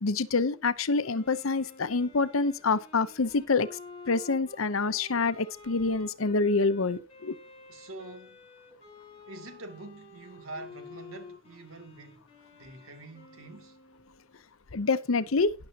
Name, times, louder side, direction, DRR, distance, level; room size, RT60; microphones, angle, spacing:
voice 1, 0.0-3.8 4.1-7.4 14.7-15.5, left 3 dB, 85° left, 0.8 m, -27 dB
Wind instrument woodwind instrument, 1.0-14.4, left 3 dB, 30° left, 4.5 m, -51 dB
voice 2, 7.7-8.4 9.3-12.2 12.5-13.8, right 2 dB, 90° right, 2.6 m, -45 dB
12.5 x 10.5 x 2.9 m
head